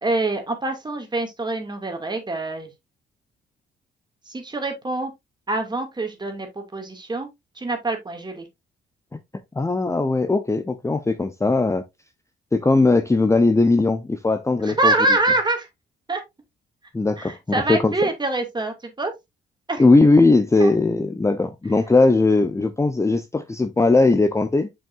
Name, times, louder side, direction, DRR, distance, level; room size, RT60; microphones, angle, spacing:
voice 1, 0.0-2.7 4.3-5.1 5.5-7.3 7.6-8.5 14.6-15.7 16.1-16.2 17.2-19.1 19.7-19.8 20.6-20.7, right 2 dB, 20° right, 2.4 m, -25 dB
voice 2, 9.6-11.8 12.5-14.9 16.9-17.9 19.8-24.7, left 3 dB, 15° left, 0.8 m, -19 dB
7.2 x 5.6 x 2.6 m
cardioid pair, 90°, 20 cm